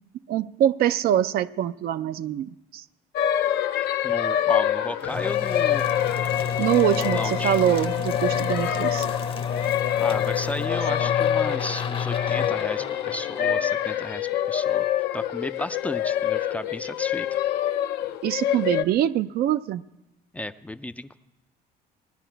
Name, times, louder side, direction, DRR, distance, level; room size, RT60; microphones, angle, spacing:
voice 1, 0.3-2.8 6.6-9.1 18.2-19.8, right 11 dB, 65° right, 0.4 m, -24 dB
sound 1, 3.2-18.8, left 10 dB, 75° left, 0.6 m, -26 dB
voice 2, 4.0-5.9 6.9-7.6 10.0-14.9 15.1-17.3 20.3-21.2, left 1 dB, 10° left, 0.4 m, -34 dB
sound 2, 5.0-14.6, left 6 dB, 30° left, 0.7 m, -30 dB
18.5 x 9.9 x 4.5 m
cardioid pair, 110°, 17 cm